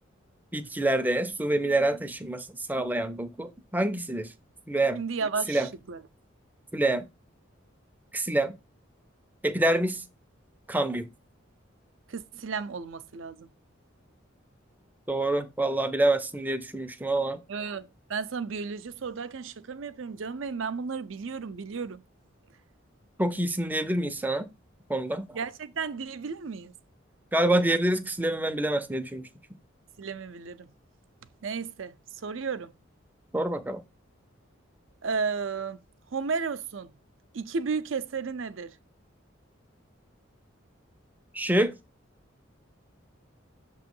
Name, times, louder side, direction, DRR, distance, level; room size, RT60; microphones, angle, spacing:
voice 1, 0.5-4.3 4.7-5.0 5.5-5.7 6.7-7.0 8.1-8.5 9.4-10.0 10.7-11.1 15.1-17.4 23.2-24.5 24.9-25.4 27.3-29.3 33.3-33.8 41.3-41.7, right 1 dB, 10° right, 0.5 m, -26 dB
voice 2, 5.0-6.0 12.1-13.5 17.5-22.0 25.3-26.7 30.0-30.7 31.4-31.9 32.2-32.7 35.0-35.8 36.1-36.9 37.3-38.7, right 5 dB, 75° right, 0.5 m, -33 dB
6.7 x 3.0 x 5.3 m
head